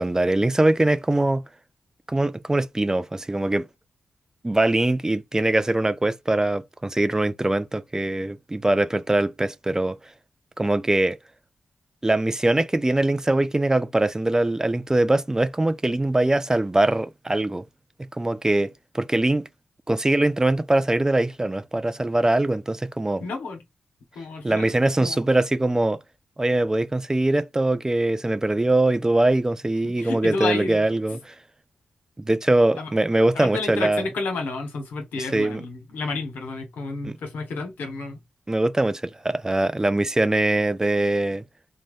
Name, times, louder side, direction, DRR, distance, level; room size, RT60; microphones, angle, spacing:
voice 1, 0.0-1.4 2.1-3.7 4.4-10.0 10.6-11.2 12.0-17.6 18.2-19.5 19.9-23.2 24.4-26.0 26.4-31.3 32.2-34.0 35.3-35.6 37.0-37.2 38.5-41.4, right 2 dB, 20° right, 0.4 m, -22 dB
voice 2, 23.2-23.6 24.1-25.2 29.8-30.8 32.8-32.9 33.3-38.2, left 3 dB, 85° left, 1.0 m, -31 dB
2.6 x 2.1 x 3.2 m
supercardioid pair, 40°, 3 cm